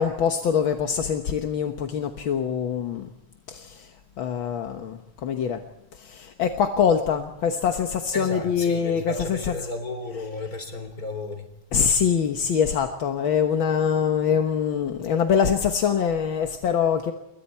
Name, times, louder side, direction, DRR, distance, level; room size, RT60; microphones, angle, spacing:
voice 1, 0.0-3.1 3.5-3.9 4.2-5.6 5.9-9.7 10.1-10.3 11.7-17.1, left 7 dB, 55° left, 1.6 m, -24 dB
voice 2, 8.1-11.5, left 2 dB, 30° left, 4.0 m, -33 dB
28.5 x 22.5 x 4.5 m
omnidirectional pair, 3.3 m